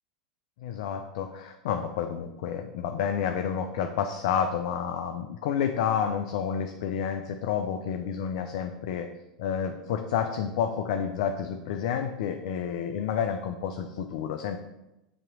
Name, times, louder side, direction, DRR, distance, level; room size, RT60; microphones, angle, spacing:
voice 1, 0.6-9.1 9.4-14.6, left 8 dB, 60° left, 6 dB, 0.5 m, -30 dB
7.5 x 3.0 x 4.9 m, 0.96 s
hypercardioid pair, 85°, 4 cm